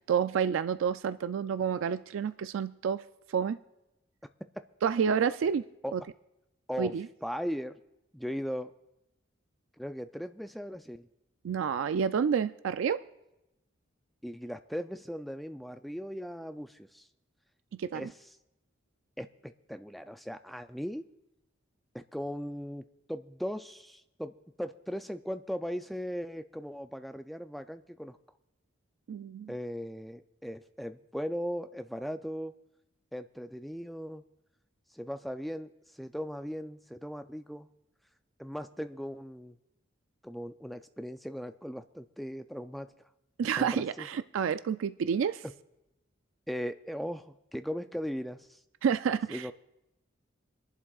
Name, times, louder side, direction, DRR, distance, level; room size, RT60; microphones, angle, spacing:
voice 1, 0.0-3.0 3.3-3.6 4.8-5.6 5.9-6.0 6.8-7.1 11.4-13.0 17.7-18.1 29.1-29.5 43.4-45.4 48.8-49.5, right 7 dB, 85° right, 12 dB, 0.3 m, -29 dB
voice 2, 7.2-7.8 8.1-8.7 9.8-11.1 14.2-17.1 17.9-18.2 19.2-21.0 21.9-24.3 24.6-28.2 29.5-32.5 33.1-34.2 34.9-37.7 38.4-39.6 40.2-42.9 43.6-44.1 45.4-45.5 46.5-48.6 49.3-49.5, equal, ahead, 8 dB, 0.3 m, -38 dB
26.5 x 11.0 x 2.4 m, 0.93 s
head